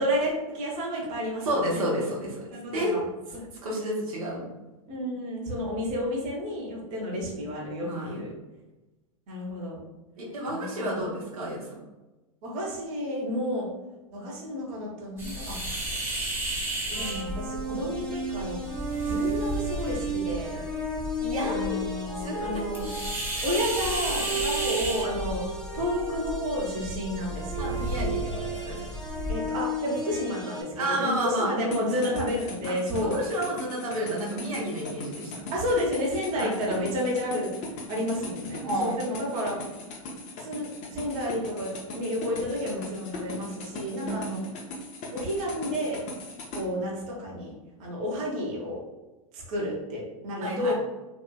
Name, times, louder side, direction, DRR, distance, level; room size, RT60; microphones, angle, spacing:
voice 1, 0.0-1.8 2.5-3.0 3.3-3.5 4.9-8.3 9.3-9.8 10.4-11.2 12.4-13.7 14.1-15.9 16.9-18.6 19.0-20.6 21.5-22.9 23.4-25.4 25.7-27.8 29.3-33.2 35.5-39.6 40.4-44.4 45.1-46.0 46.5-47.5 47.8-48.8 49.3-50.7, equal, 40° right, -3 dB, 1.1 m, -31 dB
voice 2, 1.4-2.9 3.6-4.5 7.8-8.2 10.2-11.8 21.2-21.8 22.2-22.6 27.6-28.9 30.8-31.5 32.6-32.7 33.1-35.5 36.3-36.5 38.6-39.0 44.0-44.4 50.4-50.7, right 1 dB, 80° right, -5 dB, 1.0 m, -31 dB
sound 1, 15.2-29.3, right 1 dB, 10° right, 1.0 m, -34 dB
sound 2, 16.9-30.6, right 2 dB, 5° left, 0.7 m, -34 dB
sound 3, 31.7-46.6, left 2 dB, 40° left, 0.8 m, -39 dB
3.1 x 2.8 x 2.2 m, 1.1 s
hypercardioid pair, 105°, 18 cm